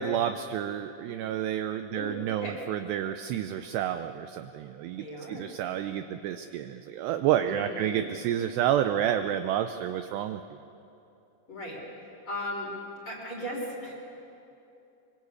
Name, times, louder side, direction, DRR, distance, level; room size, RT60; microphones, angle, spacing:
voice 1, 0.0-10.4, right 10 dB, 80° right, 8 dB, 2.5 m, -30 dB
voice 2, 1.9-2.6 5.0-5.5 7.5-8.0 11.5-11.8 12.3-12.7 13.0-13.9, left 1 dB, 25° left, -1 dB, 4.7 m, -37 dB
25.0 x 24.0 x 8.5 m, 2.8 s
omnidirectional pair, 5.5 m